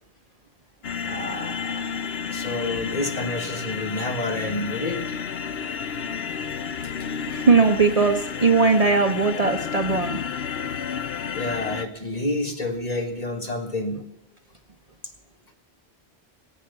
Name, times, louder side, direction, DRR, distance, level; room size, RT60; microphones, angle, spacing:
sound 1, 0.8-11.9, left 7 dB, 65° left, 0.9 m, -31 dB
voice 1, 1.0-5.3 11.3-14.1, left 2 dB, 35° left, 3 dB, 1.8 m, -29 dB
voice 2, 7.3-10.2, right 4 dB, 35° right, 5 dB, 0.9 m, -19 dB
19.0 x 8.4 x 6.9 m, 0.82 s
omnidirectional pair, 1.1 m